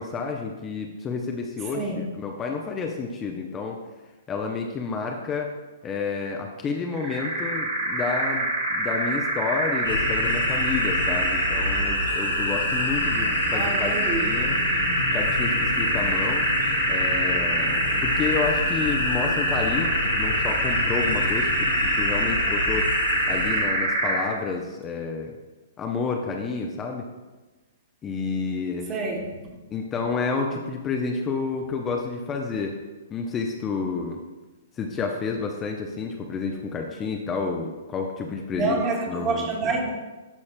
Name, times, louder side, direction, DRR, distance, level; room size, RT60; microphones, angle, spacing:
voice 1, 0.0-3.8 4.3-5.5 5.8-13.9 14.2-14.6 15.1-16.5 16.9-22.9 23.3-25.3 25.8-27.1 28.0-28.9 29.7-32.8 33.1-34.2 34.8-38.8 39.1-39.5, left 4 dB, 20° left, 2 dB, 0.6 m, -30 dB
voice 2, 1.6-2.0 13.5-14.3 28.9-29.4 38.5-39.9, right 3 dB, 25° right, -1 dB, 1.5 m, -28 dB
sound 1, 6.9-24.4, right 1 dB, 50° right, 1.7 m, -26 dB
sound 2, 9.8-23.6, left 2 dB, 90° left, 1.3 m, -27 dB
11.5 x 4.2 x 2.2 m, 1.2 s
hypercardioid pair, 120°, 0 cm